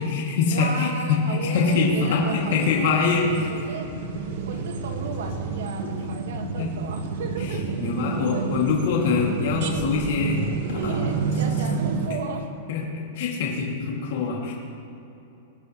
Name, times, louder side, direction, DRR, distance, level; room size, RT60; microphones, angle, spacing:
voice 1, 0.0-3.5 6.6-6.7 7.4-10.4 12.7-14.5, left 5 dB, 60° left, -3 dB, 2.4 m, -24 dB
voice 2, 0.5-2.9 3.5-3.9 4.5-7.6 8.3-8.5 10.7-12.5, right 4 dB, 80° right, 4 dB, 1.7 m, -34 dB
sound 1, 1.4-12.1, right 5 dB, 60° right, 1.3 m, -30 dB
21.0 x 10.5 x 3.2 m, 2.9 s
supercardioid pair, 160°, 0 cm